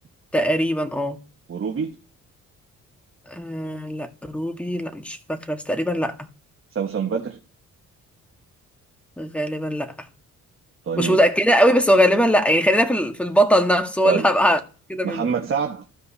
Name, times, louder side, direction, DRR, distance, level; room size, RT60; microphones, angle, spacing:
voice 1, 0.3-1.2 3.3-6.1 9.2-9.9 11.0-14.6 14.9-15.3, equal, 5° left, 1.6 m, -20 dB
voice 2, 1.5-2.0 6.7-7.4 10.8-11.2 14.0-14.3 15.0-15.8, right 6 dB, 45° right, 1.4 m, -25 dB
15.5 x 5.2 x 2.8 m
cardioid pair, 90°, 30 cm